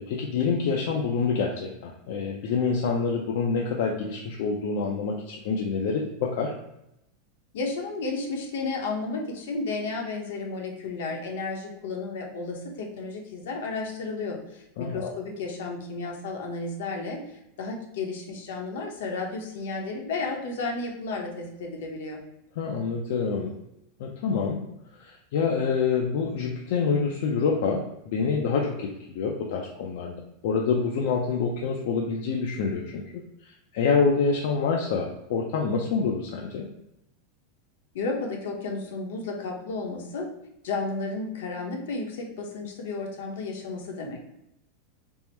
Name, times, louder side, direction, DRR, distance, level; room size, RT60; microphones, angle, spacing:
voice 1, 0.0-6.6 14.8-15.1 22.6-23.5 24.0-24.6 25.0-30.2 30.4-36.7, left 5 dB, 60° left, 0 dB, 0.5 m, -27 dB
voice 2, 7.5-17.2 17.6-22.2 37.9-40.3 40.6-44.2, left 3 dB, 75° left, 1 dB, 0.9 m, -32 dB
3.5 x 2.0 x 4.3 m, 0.83 s
supercardioid pair, 160°, 0 cm